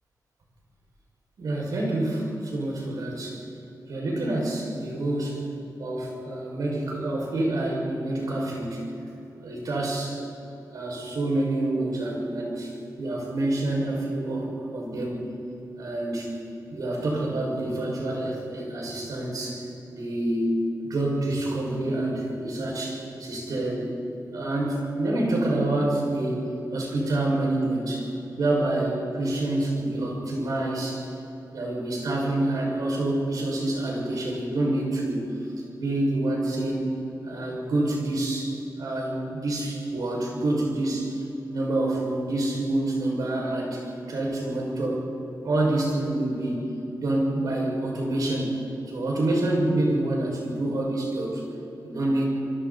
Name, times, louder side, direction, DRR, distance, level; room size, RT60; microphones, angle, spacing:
voice 1, 1.4-3.4 3.9-5.4 5.8-8.8 9.4-10.2 10.7-15.3 15.8-16.3 16.7-20.5 20.8-23.9 24.3-28.1 28.4-31.1 31.5-35.3 35.7-36.9 37.2-41.2 41.5-45.0 45.4-46.6 47.0-48.5 48.9-51.4 51.8-52.2, right 1 dB, 65° right, -2 dB, 6.0 m, -27 dB
27.0 x 24.5 x 4.2 m, 3.0 s
wide cardioid pair, 180°, 7 cm